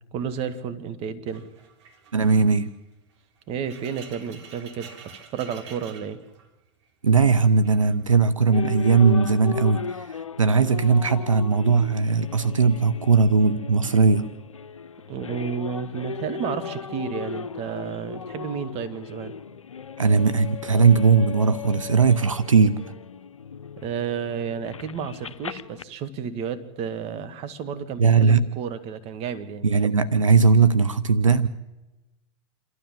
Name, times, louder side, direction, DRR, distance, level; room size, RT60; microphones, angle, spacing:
voice 1, 0.1-1.4 3.5-6.2 15.1-19.4 23.8-29.7, right 7 dB, 40° right, 12 dB, 1.9 m, -32 dB
sound 1, 1.3-6.9 7.2-8.3 8.9-9.3, right 6 dB, 60° right, 3.2 m, -48 dB
voice 2, 2.1-2.7 7.0-14.3 20.0-22.9 28.0-28.5 29.6-31.5, right 5 dB, 85° right, 13 dB, 0.7 m, -19 dB
sound 2, 8.5-25.8, left 5 dB, 85° left, 0.6 m, -37 dB
28.0 x 12.5 x 7.5 m, 1.1 s
figure-of-eight pair, 95°, 16 cm